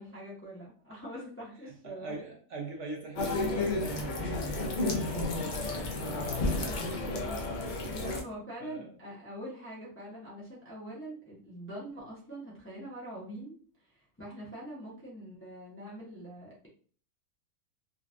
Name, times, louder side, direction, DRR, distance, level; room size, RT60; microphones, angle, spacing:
voice 1, 0.0-2.1 6.6-7.5 7.8-16.7, right 1 dB, 10° left, -6 dB, 0.6 m, -44 dB
voice 2, 1.8-5.3 5.9-6.2 8.6-8.9, right 2 dB, 60° right, 1 dB, 1.0 m, -42 dB
sound 1, 3.2-8.2, left 2 dB, 70° left, 0.4 m, -32 dB
3.8 x 2.3 x 2.5 m, 0.43 s
omnidirectional pair, 1.5 m